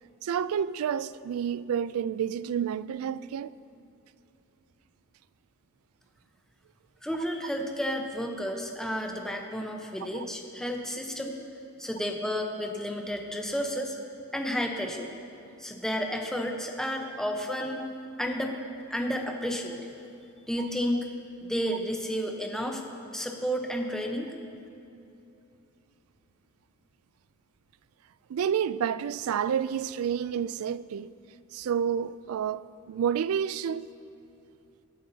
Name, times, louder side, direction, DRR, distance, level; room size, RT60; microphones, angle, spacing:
voice 1, 0.2-3.5 10.1-10.3 28.3-31.1 31.5-33.9, right 8 dB, 85° right, 0.3 m, -29 dB
voice 2, 7.0-11.4 11.8-14.0 14.3-15.1 15.6-17.9 18.2-18.5 18.9-19.8 20.5-21.1 21.4-22.8 23.1-24.3, equal, 5° left, 0.9 m, -31 dB
21.5 x 9.2 x 2.8 m
head